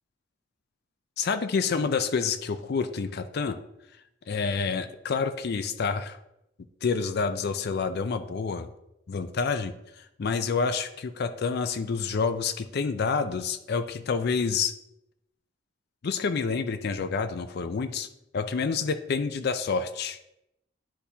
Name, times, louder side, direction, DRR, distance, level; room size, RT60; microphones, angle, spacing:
voice 1, 1.2-3.6 4.3-6.2 6.8-8.7 9.1-14.7 16.0-18.1 18.3-20.2, left 5 dB, 55° left, 10 dB, 0.4 m, -28 dB
10.0 x 4.2 x 2.8 m, 0.83 s
head